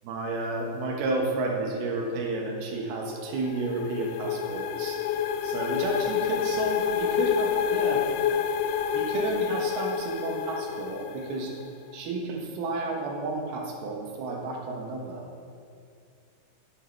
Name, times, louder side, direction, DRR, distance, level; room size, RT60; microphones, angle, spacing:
voice 1, 0.0-5.0 5.4-8.1 8.9-11.6 11.9-15.2, right 3 dB, 85° right, 1 dB, 3.1 m, -31 dB
sound 1, 3.0-11.7, left 8 dB, 85° left, 2.4 m, -28 dB
9.2 x 8.1 x 4.5 m, 2.5 s
omnidirectional pair, 4.3 m